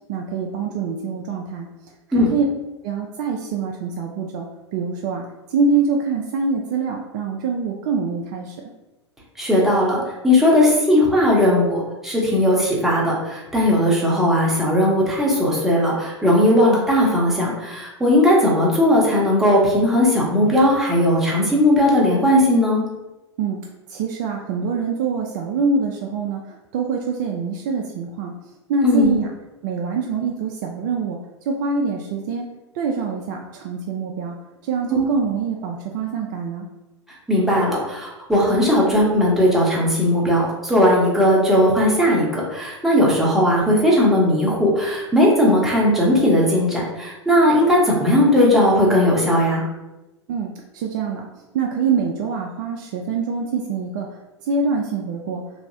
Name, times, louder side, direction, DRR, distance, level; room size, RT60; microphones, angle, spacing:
voice 1, 0.1-1.7 2.1-2.5 2.8-4.5 4.7-5.2 5.5-8.6 23.4-23.6 23.9-28.3 28.7-29.3 29.6-31.2 31.5-32.5 32.7-34.4 34.6-36.7 50.3-51.3 51.5-54.1 54.4-55.4, right 4 dB, 40° right, 1 dB, 0.3 m, -24 dB
voice 2, 9.4-22.8 28.8-29.2 34.9-35.1 37.3-49.6, left 1 dB, ahead, -5 dB, 0.8 m, -17 dB
3.0 x 2.7 x 2.6 m, 1.0 s
figure-of-eight pair, 95°, 15 cm